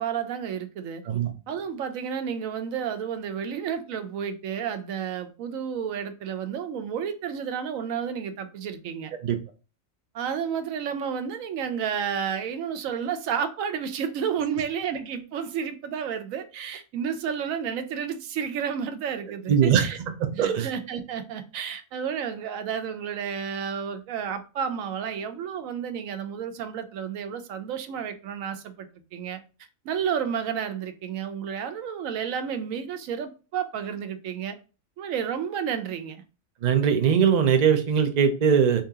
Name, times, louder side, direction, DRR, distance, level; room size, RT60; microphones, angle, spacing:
voice 1, 0.0-1.0 1.5-9.1 10.1-20.0 20.3-29.4 29.8-34.6 35.0-36.2, right 7 dB, 90° right, 1.0 m, -31 dB
voice 2, 19.5-19.8 20.2-20.7 36.6-38.8, right 7 dB, 50° right, 0.5 m, -21 dB
3.8 x 2.8 x 3.5 m
omnidirectional pair, 1.4 m